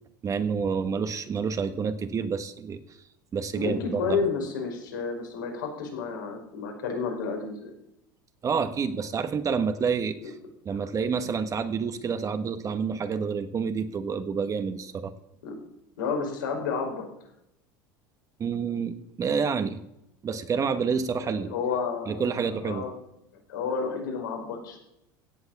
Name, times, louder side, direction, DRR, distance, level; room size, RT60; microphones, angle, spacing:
voice 1, 0.2-2.8 3.3-4.2 8.4-10.3 10.6-15.1 18.4-19.8 20.2-21.5 22.1-22.9, right 6 dB, 30° right, 9 dB, 1.2 m, -28 dB
voice 2, 3.5-7.7 10.2-10.3 10.7-10.8 15.4-15.5 16.0-17.1 21.2-22.9 23.5-24.8, left 5 dB, 85° left, 2 dB, 5.1 m, -31 dB
16.5 x 7.8 x 7.2 m, 0.83 s
hypercardioid pair, 90°, 11 cm